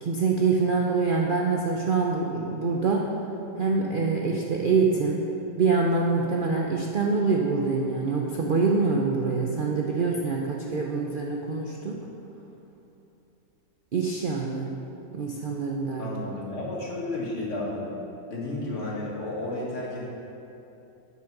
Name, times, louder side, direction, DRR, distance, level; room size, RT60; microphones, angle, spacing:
voice 1, 0.0-3.2 3.6-5.3 5.6-12.1 13.9-14.7 15.1-16.1, right 4 dB, 80° right, 0 dB, 0.4 m, -25 dB
voice 2, 16.0-17.9 18.3-20.1, left 2 dB, 45° left, -4 dB, 1.9 m, -32 dB
8.8 x 6.1 x 6.0 m, 2.9 s
omnidirectional pair, 1.8 m